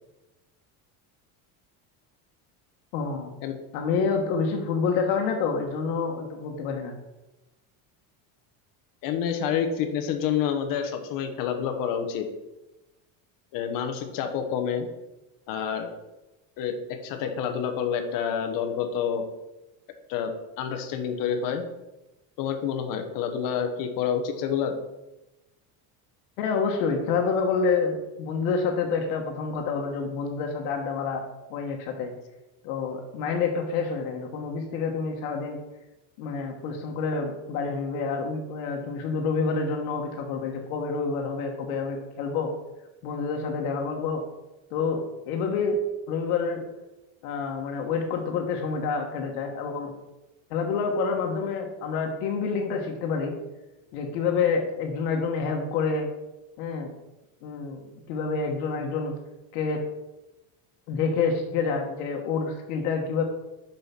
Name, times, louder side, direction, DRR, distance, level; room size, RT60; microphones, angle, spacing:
voice 1, 2.9-3.3 3.7-7.0 26.4-31.2 31.5-32.1 32.6-35.6 36.2-42.5 43.0-44.2 44.7-45.8 46.1-46.6 47.2-49.9 50.5-53.4 53.9-56.1 56.6-56.9 57.4-59.2 59.5-59.8 60.9-63.2, left 5 dB, 90° left, 2 dB, 1.4 m, -28 dB
voice 2, 9.0-12.3 13.5-14.9 15.5-15.9 16.6-19.2 20.1-20.3 20.6-21.6 22.4-24.7, left 8 dB, 50° left, 6 dB, 1.1 m, -28 dB
6.8 x 5.8 x 5.8 m, 1.0 s
cardioid pair, 175°, 43 cm